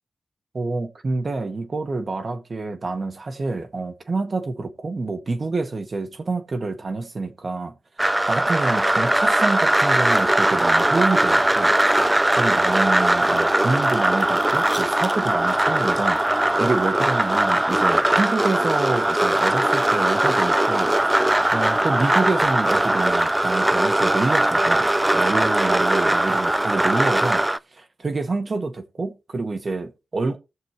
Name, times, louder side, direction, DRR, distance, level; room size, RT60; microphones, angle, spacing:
voice 1, 0.5-7.7 8.3-11.8 12.3-16.2 16.6-21.1 21.5-30.4, right 3 dB, 50° right, 1.7 m, -27 dB
sound 1, 8.0-27.6, right 1 dB, 15° right, 0.5 m, -20 dB
20.0 x 6.9 x 3.1 m
cardioid pair, 75°, 0 cm